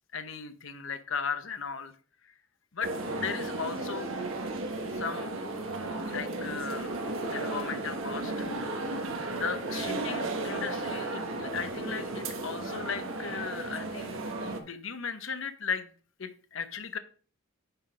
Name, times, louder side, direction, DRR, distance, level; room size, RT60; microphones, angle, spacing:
voice 1, 0.1-1.9 2.7-2.9 3.2-4.1 5.0-5.3 6.1-7.0 7.3-8.5 9.3-15.9 16.2-17.0, left 6 dB, 70° left, 10 dB, 0.9 m, -36 dB
sound 1, 2.8-14.6, right 2 dB, 75° right, 1.2 m, -34 dB
10.0 x 4.0 x 5.0 m, 0.41 s
head